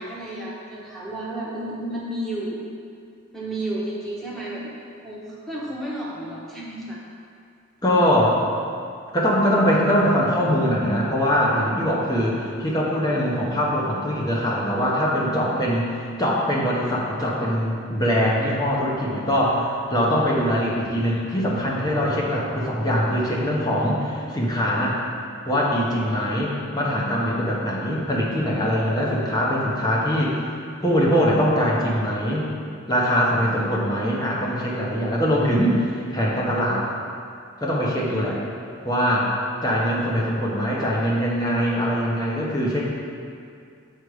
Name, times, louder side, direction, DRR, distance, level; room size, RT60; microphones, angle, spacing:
voice 1, 0.0-2.6 3.3-4.7 5.0-7.0 39.3-39.6, right 1 dB, ahead, -7 dB, 1.2 m, -32 dB
voice 2, 7.8-8.4 9.1-25.0 25.5-30.6 30.8-32.5 32.9-36.9 37.6-38.4 38.8-39.3 39.6-42.8, equal, 20° left, -5 dB, 1.0 m, -22 dB
6.4 x 5.2 x 4.9 m, 2.3 s
head